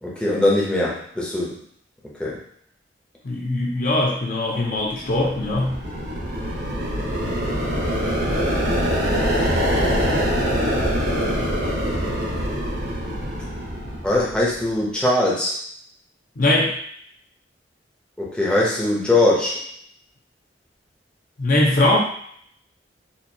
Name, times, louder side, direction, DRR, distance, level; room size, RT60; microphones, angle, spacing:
voice 1, 0.0-1.6 2.2-2.4 8.5-8.7 14.0-15.6 18.2-19.6, left 1 dB, 5° left, -5 dB, 0.7 m, -21 dB
voice 2, 3.2-5.8 16.4-16.7 21.4-22.0, left 1 dB, 50° left, -2 dB, 0.7 m, -21 dB
sound 1, 4.8-14.6, equal, 65° right, 1.0 m, -24 dB
4.3 x 2.5 x 2.8 m, 0.65 s
head